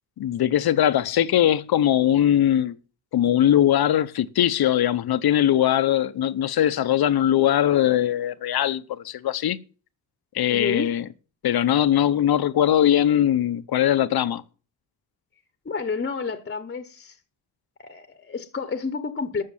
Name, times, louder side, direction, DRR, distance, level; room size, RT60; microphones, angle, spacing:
voice 1, 0.2-2.8 3.1-9.6 10.3-11.0 11.4-14.4, left 11 dB, 65° left, 0.9 m, -21 dB
voice 2, 10.5-10.9 15.6-17.2 17.8-19.4, left 4 dB, 25° left, 1.2 m, -30 dB
13.0 x 6.6 x 7.3 m
cardioid pair, 110°, 40 cm